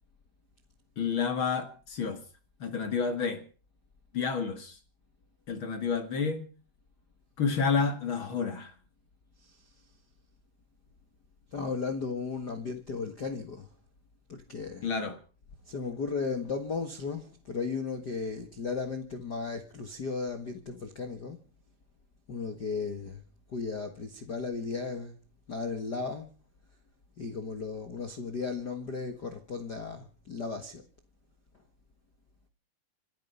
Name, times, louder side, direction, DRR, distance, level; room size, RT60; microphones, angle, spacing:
voice 1, 1.0-2.2 2.6-3.4 4.1-4.8 5.5-6.5 7.4-8.7 14.8-15.2, left 5 dB, 45° left, 1.8 m, -30 dB
voice 2, 11.5-13.7 14.3-14.9 15.6-21.4 22.3-23.2 23.5-25.2 25.5-26.3 27.2-30.8, left 4 dB, 65° left, 1.0 m, -35 dB
27.0 x 9.4 x 5.5 m
omnidirectional pair, 4.5 m